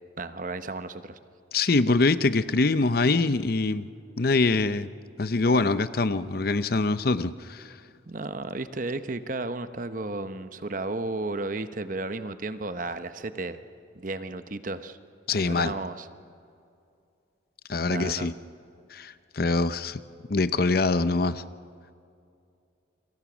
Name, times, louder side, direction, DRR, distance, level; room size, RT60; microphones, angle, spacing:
voice 1, 0.2-1.2 8.1-13.6 13.9-15.0 15.3-16.1 17.9-18.3, right 2 dB, 45° right, 11 dB, 0.9 m, -33 dB
voice 2, 1.5-3.9 4.2-4.9 5.2-7.8 15.3-15.7 17.7-18.3 18.9-20.0 20.3-21.4, left 3 dB, 50° left, 14 dB, 0.6 m, -24 dB
29.0 x 25.5 x 6.2 m, 2.5 s
head